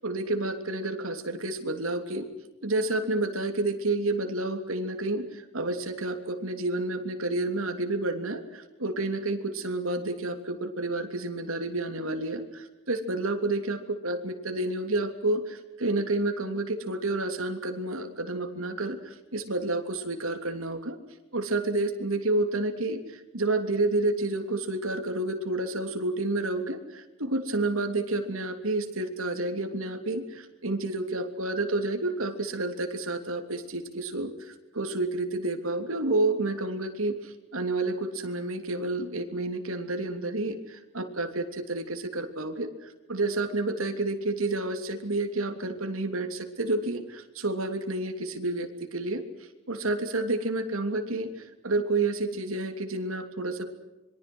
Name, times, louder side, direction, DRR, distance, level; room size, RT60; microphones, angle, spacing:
voice 1, 0.0-2.3 2.6-21.0 21.3-49.2 49.7-53.7, right 2 dB, 80° right, 6 dB, 3.0 m, -30 dB
26.0 x 23.5 x 6.2 m, 1.1 s
head